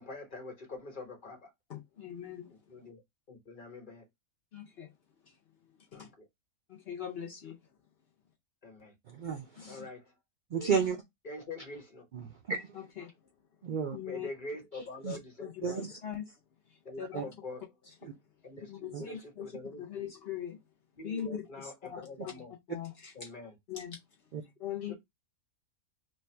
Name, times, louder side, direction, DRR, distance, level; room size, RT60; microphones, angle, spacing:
voice 1, 0.0-1.5 2.5-3.0 3.3-4.1 5.9-6.2 8.6-8.9 9.7-10.1 10.5-10.7 11.2-12.1 14.0-15.8 16.8-17.6 18.4-20.1 21.0-22.5 23.1-23.6 24.8-24.9, left 2 dB, 40° left, 1.2 m, -44 dB
voice 2, 1.7-2.5 4.5-4.9 5.9-6.1 6.7-7.5 9.6-9.9 12.7-13.1 13.9-14.3 15.4-16.3 17.0-17.2 18.7-20.6 21.0-21.4 21.9-22.0 22.7-23.1 23.7-24.0 24.6-24.9, left 9 dB, 55° left, 0.8 m, -41 dB
voice 3, 9.1-9.8 10.5-11.0 12.1-12.7 13.6-14.0 15.0-15.2 15.6-16.0 17.1-17.2 18.0-18.1 18.9-19.0 24.3-24.4, right 6 dB, 85° right, 0.4 m, -32 dB
3.3 x 2.2 x 4.3 m
omnidirectional pair, 1.5 m